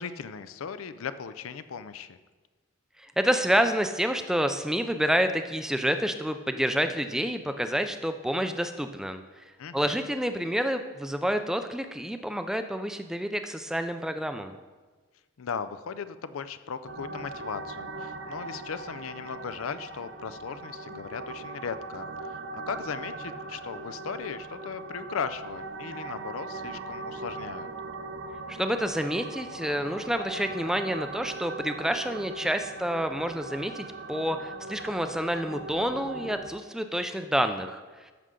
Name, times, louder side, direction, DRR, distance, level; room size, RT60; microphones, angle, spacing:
voice 1, 0.0-2.2 9.6-10.0 15.4-27.7, left 6 dB, 80° left, 12 dB, 0.5 m, -37 dB
voice 2, 3.0-14.5 28.5-38.1, equal, 5° right, 8 dB, 0.4 m, -28 dB
sound 1, 16.9-36.5, right 3 dB, 55° right, 0.7 m, -40 dB
13.5 x 6.4 x 3.8 m, 1.3 s
head